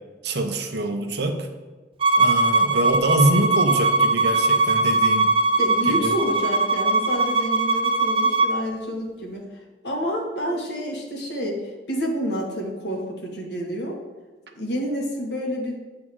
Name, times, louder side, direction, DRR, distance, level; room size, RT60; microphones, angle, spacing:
voice 1, 0.2-1.5 2.2-5.3 5.9-6.1, right 2 dB, 65° right, 5 dB, 0.9 m, -24 dB
Bowed string instrument, 2.0-8.5, right 3 dB, 30° right, 0.4 m, -20 dB
voice 2, 5.6-9.5 9.8-11.6 11.9-14.0 14.5-15.8, equal, 65° left, 0 dB, 1.5 m, -28 dB
8.6 x 3.8 x 6.1 m, 1.3 s
head